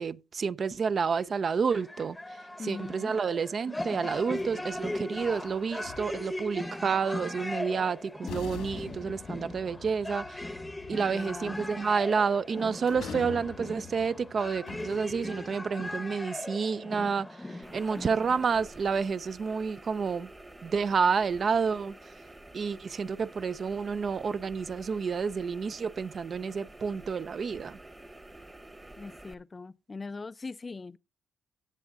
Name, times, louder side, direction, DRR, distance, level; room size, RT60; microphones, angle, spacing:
voice 1, 0.0-2.2 2.6-10.4 10.9-20.3 20.6-21.9 22.5-27.8, right 5 dB, 45° right, 0.4 m, -29 dB
sound 1, 1.7-18.6, left 1 dB, 10° left, 0.8 m, -39 dB
voice 2, 2.6-3.2 10.9-11.6 29.0-31.0, left 3 dB, 25° left, 0.4 m, -41 dB
sound 2, 4.1-6.5 7.7-7.8 8.3-15.7, left 6 dB, 90° left, 1.8 m, -46 dB
sound 3, 17.6-29.3, right 1 dB, 15° right, 1.0 m, -49 dB
17.0 x 7.1 x 2.5 m
cardioid pair, 90°, 0 cm